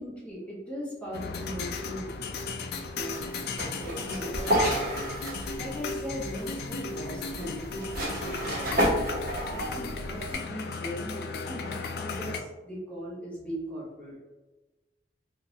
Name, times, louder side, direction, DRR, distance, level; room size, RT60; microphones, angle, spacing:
voice 1, 0.0-2.1 2.8-3.3 3.8-4.7 5.5-8.8 9.4-14.2, equal, 5° left, -7 dB, 1.1 m, -39 dB
sound 1, 1.1-12.4, left 4 dB, 60° left, 0.3 m, -36 dB
sound 2, 2.0-10.3, equal, 55° right, 1.1 m, -32 dB
sound 3, 3.1-9.8, equal, 15° right, 1.5 m, -50 dB
3.7 x 2.5 x 2.9 m, 1.1 s
head